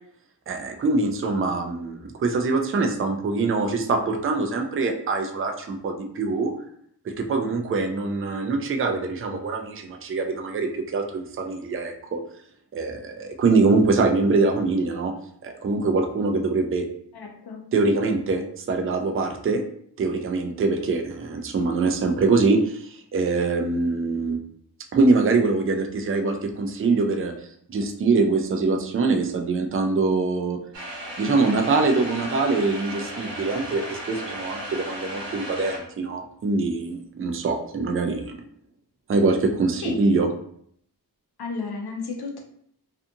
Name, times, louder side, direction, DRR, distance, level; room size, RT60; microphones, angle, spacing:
voice 1, 0.5-6.5 7.0-12.2 12.7-15.1 15.4-16.9 17.7-19.6 20.0-24.4 24.9-27.3 27.7-30.6 31.2-38.4 39.1-40.3, right 3 dB, 35° right, 4 dB, 0.4 m, -23 dB
voice 2, 17.1-17.6 39.8-39.9 41.4-42.4, left 4 dB, 65° left, 1 dB, 0.7 m, -33 dB
sound 1, 30.7-35.8, equal, 80° right, 0.9 m, -35 dB
2.6 x 2.4 x 2.6 m, 0.67 s
wide cardioid pair, 85°, 41 cm